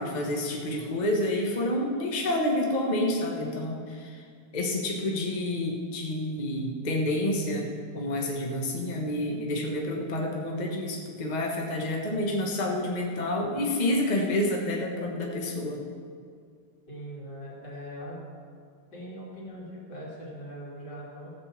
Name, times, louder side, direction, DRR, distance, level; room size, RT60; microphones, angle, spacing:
voice 1, 0.0-4.2 4.5-15.8, left 1 dB, 25° left, -1 dB, 1.2 m, -29 dB
voice 2, 16.9-18.2 18.9-21.3, equal, 70° left, -5 dB, 3.3 m, -41 dB
15.0 x 5.4 x 7.2 m, 2.1 s
omnidirectional pair, 1.9 m